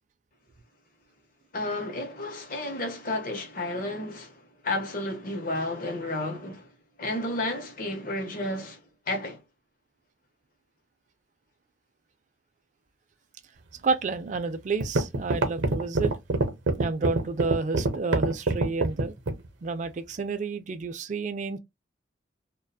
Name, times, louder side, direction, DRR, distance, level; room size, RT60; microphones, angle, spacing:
voice 1, 1.5-6.7 7.0-8.8 9.1-9.4, left 2 dB, 50° left, 0.8 m, -32 dB
voice 2, 13.8-16.1 16.8-19.1 19.6-21.6, right 4 dB, 40° right, 0.3 m, -30 dB
sound 1, 14.3-14.4 14.8-19.5, right 2 dB, 85° right, 0.6 m, -24 dB
2.6 x 2.2 x 2.3 m
head